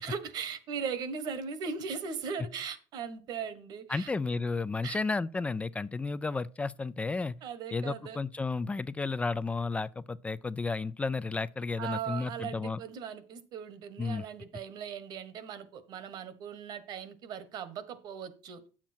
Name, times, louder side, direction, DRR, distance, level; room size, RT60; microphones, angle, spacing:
voice 1, 0.0-4.1 4.8-5.0 7.4-8.2 11.8-18.6, right 6 dB, 60° right, 1.5 m, -39 dB
voice 2, 3.9-7.3 7.7-12.8 14.0-14.3, left 4 dB, 15° left, 0.3 m, -32 dB
9.0 x 7.3 x 4.4 m
cardioid pair, 110°, 8 cm